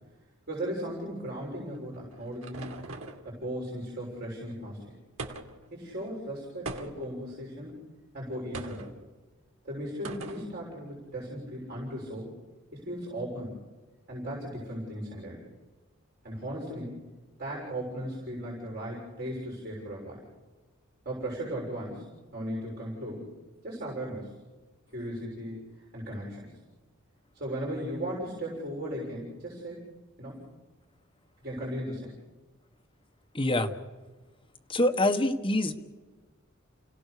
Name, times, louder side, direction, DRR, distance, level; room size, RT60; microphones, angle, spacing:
voice 1, 0.5-2.7 3.2-4.9 5.7-7.7 8.1-8.9 9.6-12.3 12.7-13.6 14.1-15.5 16.2-17.0 17.4-20.2 21.0-22.1 22.3-23.3 23.6-24.3 24.9-26.5 27.3-29.9 30.2-30.4 31.4-32.2, right 1 dB, 45° right, -3 dB, 6.8 m, -37 dB
sound 1, 1.7-3.3 5.2-5.7 6.6-7.2 8.5-8.9 10.0-10.5, right 3 dB, 80° right, 2.4 m, -40 dB
voice 2, 33.3-33.7 34.7-35.7, left 1 dB, 25° left, 4 dB, 1.4 m, -25 dB
29.5 x 17.0 x 6.8 m, 1.3 s
head